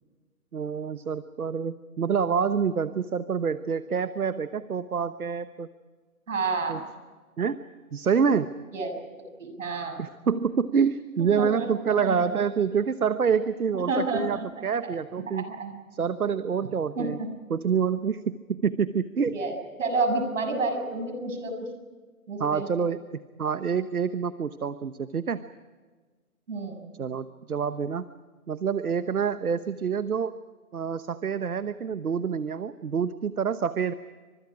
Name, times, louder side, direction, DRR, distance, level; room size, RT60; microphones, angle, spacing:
voice 1, 0.5-5.7 6.7-6.8 7.4-7.6 7.9-8.5 10.0-15.5 15.9-17.2 17.5-19.4 22.4-25.4 27.0-28.0 28.5-30.4 30.7-33.9, right 6 dB, 75° right, 13 dB, 1.2 m, -27 dB
voice 2, 6.3-6.8 8.7-8.9 9.4-10.0 11.2-11.7 12.0-12.2 13.7-14.4 15.5-15.7 17.0-17.3 19.3-21.7 22.3-22.7 26.5-26.9, right 3 dB, 60° right, 6 dB, 7.2 m, -29 dB
29.5 x 25.5 x 4.9 m, 1.4 s
figure-of-eight pair, 150°, 44 cm